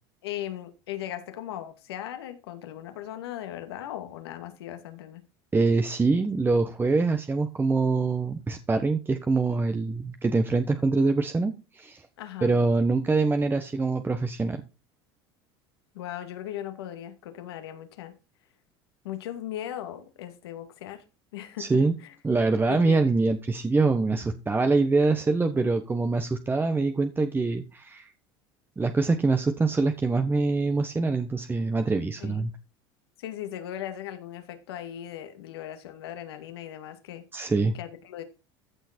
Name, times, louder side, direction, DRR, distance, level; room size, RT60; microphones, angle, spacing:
voice 1, 0.2-5.2 12.2-12.5 15.9-18.1 19.0-21.0 21.3-22.1 22.7-23.0 32.2-32.5 33.2-37.2 37.7-38.2, left 11 dB, 85° left, 2.4 m, -38 dB
voice 2, 5.5-12.0 12.4-14.6 21.6-21.9 22.2-28.1 28.8-32.5 37.3-37.7, right 3 dB, 15° right, 1.2 m, -24 dB
14.5 x 6.4 x 4.5 m
supercardioid pair, 100°, 13 cm